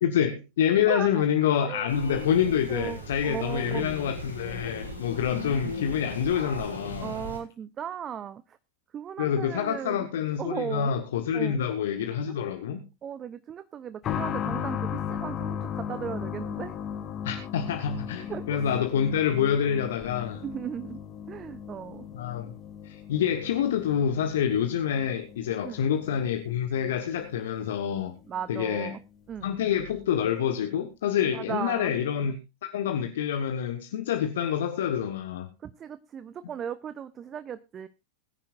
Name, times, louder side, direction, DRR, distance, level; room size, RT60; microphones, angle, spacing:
voice 1, 0.0-7.2 9.2-12.8 17.2-20.4 22.1-22.5 22.8-28.1 28.5-29.0 29.4-32.4 32.7-35.5, left 8 dB, 60° left, 1.3 m, -27 dB
voice 2, 0.9-1.4 1.6-1.9 2.7-3.9 5.3-5.5 7.0-8.6 8.9-10.1 10.4-11.0 11.3-11.6 12.3-12.5 13.0-16.8 18.3-18.8 20.4-21.0 21.3-22.1 25.6-25.8 28.3-29.0 29.3-29.5 31.3-31.9 35.6-37.9, right 9 dB, 25° right, 0.6 m, -37 dB
sound 1, 1.9-7.4, left 1 dB, 85° left, 5.4 m, -37 dB
sound 2, 14.0-28.5 28.7-28.8 29.8-29.9, left 8 dB, 30° left, 1.6 m, -37 dB
21.5 x 10.5 x 2.5 m
figure-of-eight pair, 90°, 0 cm